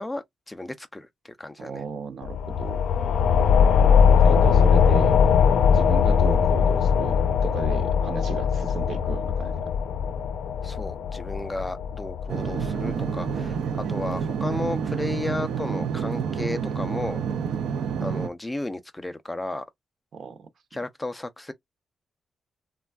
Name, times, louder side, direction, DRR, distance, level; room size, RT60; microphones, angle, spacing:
voice 1, 0.0-1.8 10.6-13.6 13.9-17.2 18.0-19.6 20.7-21.5, left 2 dB, 10° left, 0.3 m, -33 dB
voice 2, 1.6-2.9 4.2-5.2 5.7-9.5 20.1-20.5, right 6 dB, 55° right, 0.7 m, -35 dB
sound 1, 2.2-13.4, left 7 dB, 90° left, 0.4 m, -21 dB
sound 2, 12.3-18.3, right 7 dB, 90° right, 0.5 m, -28 dB
3.3 x 2.2 x 2.2 m
wide cardioid pair, 175°, 0 cm